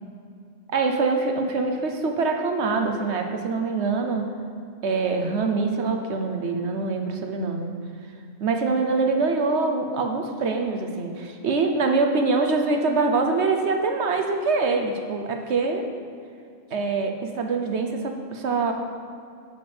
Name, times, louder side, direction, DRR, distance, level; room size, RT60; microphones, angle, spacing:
voice 1, 0.7-4.3 4.8-7.7 8.4-15.9 16.7-18.7, right 4 dB, 55° right, 4 dB, 1.1 m, -24 dB
10.5 x 5.2 x 7.1 m, 2.4 s
omnidirectional pair, 1.5 m